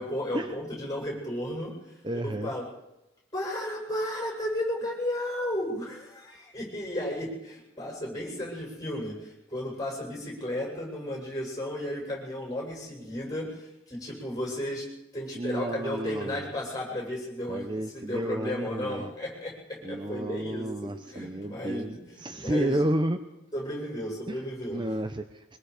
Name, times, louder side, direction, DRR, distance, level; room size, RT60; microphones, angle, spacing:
voice 1, 0.0-2.6 3.3-14.9 15.1-22.9 23.5-25.0, left 1 dB, 20° left, -2 dB, 7.8 m, -34 dB
voice 2, 2.0-2.5 15.3-16.5 17.5-19.1 19.8-23.2 24.3-24.4 24.7-25.6, right 1 dB, 20° right, 8 dB, 0.8 m, -31 dB
24.0 x 21.5 x 5.1 m, 0.92 s
head